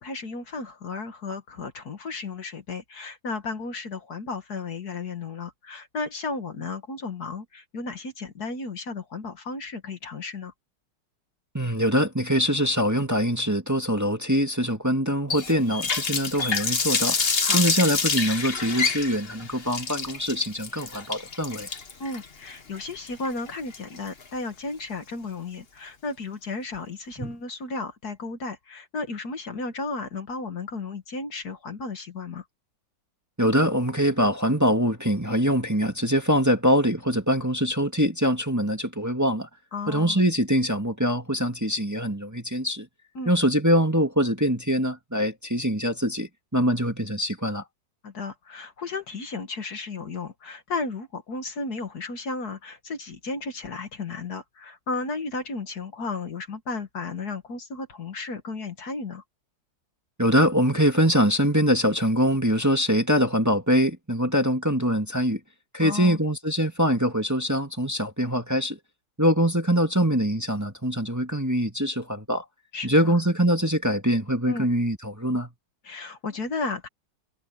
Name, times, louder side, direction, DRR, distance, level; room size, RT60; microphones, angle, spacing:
voice 1, 0.0-10.5 17.4-17.7 22.0-32.4 39.7-40.2 43.2-43.3 48.0-59.2 65.8-66.2 72.7-73.2 74.5-74.7 75.8-76.9, left 3 dB, 60° left, 2.2 m, -34 dB
voice 2, 11.5-17.3 17.5-21.7 27.2-27.3 33.4-39.5 39.9-42.9 43.3-47.6 60.2-65.4 65.7-68.8 69.2-72.4 72.8-75.5, equal, 10° right, 1.9 m, -23 dB
Water tap faucet, 15.3-24.2, left 5 dB, 35° left, 1.5 m, -27 dB
omnidirectional pair, 2.0 m